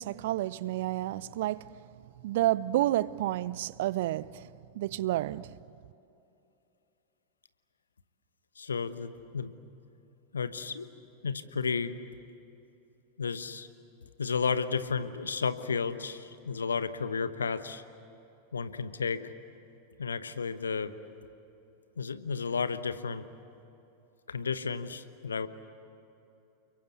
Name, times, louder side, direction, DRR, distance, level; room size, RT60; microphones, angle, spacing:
voice 1, 0.0-1.6 2.2-4.4 4.7-5.6, right 15 dB, 55° right, 0.5 m, -30 dB
voice 2, 8.6-9.5 10.3-10.9 11.2-12.0 13.2-13.7 14.2-17.8 18.5-19.2 20.0-20.9 22.0-23.3 24.3-25.5, left 5 dB, 70° left, 1.1 m, -32 dB
30.0 x 22.5 x 8.2 m
figure-of-eight pair, 90°, 0 cm